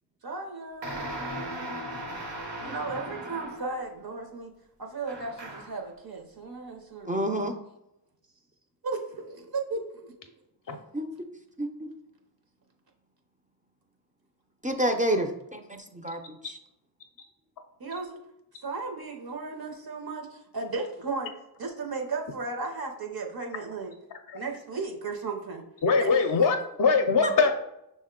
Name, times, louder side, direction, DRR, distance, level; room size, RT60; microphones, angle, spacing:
voice 1, 0.2-1.2 2.6-4.5 4.8-7.5 8.8-10.1 17.8-18.2 18.6-21.3 21.6-23.9 24.3-25.6 26.0-26.1, right 3 dB, 60° right, 2 dB, 0.6 m, -35 dB
sound 1, 0.8-3.8 5.1-5.9, right 1 dB, 80° right, 0.9 m, -37 dB
voice 2, 7.1-7.5 10.9-11.1 11.6-11.9 14.6-16.2 27.2-27.3, right 1 dB, 20° right, 4 dB, 0.4 m, -28 dB
voice 3, 25.8-27.5, left 4 dB, 50° left, 6 dB, 0.4 m, -22 dB
6.1 x 2.1 x 3.6 m, 0.86 s
wide cardioid pair, 45°, 42 cm